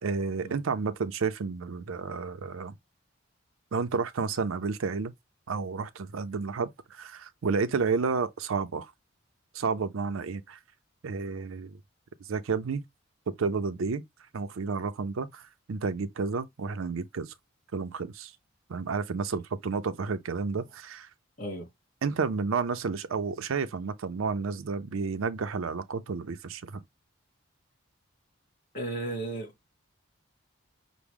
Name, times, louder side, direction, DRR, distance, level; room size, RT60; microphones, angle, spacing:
voice 1, 0.0-2.8 3.7-5.1 5.5-8.9 9.5-10.6 11.0-11.7 12.3-12.8 13.3-14.0 14.3-17.3 17.7-18.3 18.7-21.1 22.0-26.8, right 5 dB, 80° right, 0.5 m, -31 dB
voice 2, 28.7-29.5, right 2 dB, 40° left, 2.2 m, -34 dB
5.9 x 2.0 x 3.5 m
head